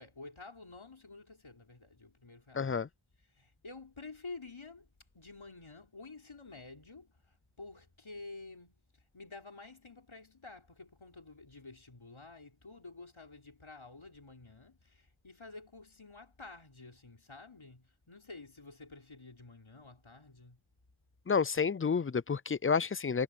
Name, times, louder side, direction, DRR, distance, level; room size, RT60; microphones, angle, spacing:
voice 1, 0.0-2.7 3.3-4.9 5.1-8.8 9.1-20.6, left 3 dB, 70° left, 4.1 m, -50 dB
voice 2, 2.5-2.9 21.3-23.2, left 5 dB, 30° left, 0.4 m, -30 dB
wide cardioid pair, 40°, 50 cm